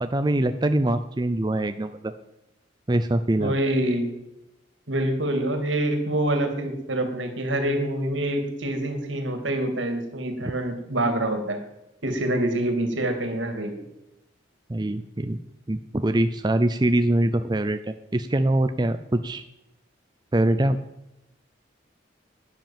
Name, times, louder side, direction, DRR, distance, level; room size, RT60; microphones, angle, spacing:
voice 1, 0.0-2.1 2.9-3.6 14.7-15.4 15.7-19.4 20.3-20.8, right 1 dB, 20° right, 9 dB, 0.5 m, -23 dB
voice 2, 3.4-4.1 4.9-11.6 12.0-13.7, right 1 dB, 75° right, 6 dB, 2.7 m, -26 dB
12.0 x 10.5 x 7.4 m, 0.91 s
head